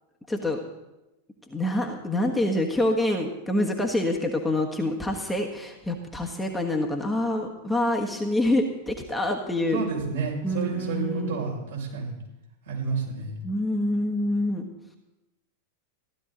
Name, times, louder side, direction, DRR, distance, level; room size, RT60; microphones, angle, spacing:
voice 1, 0.3-0.6 1.5-9.8 10.4-11.4 13.4-14.6, left 1 dB, 5° left, 1 dB, 1.4 m, -26 dB
voice 2, 9.7-12.1 12.7-13.3, right 4 dB, 65° right, -3 dB, 5.7 m, -30 dB
15.5 x 12.5 x 3.9 m, 0.97 s
figure-of-eight pair, 90°, 0 cm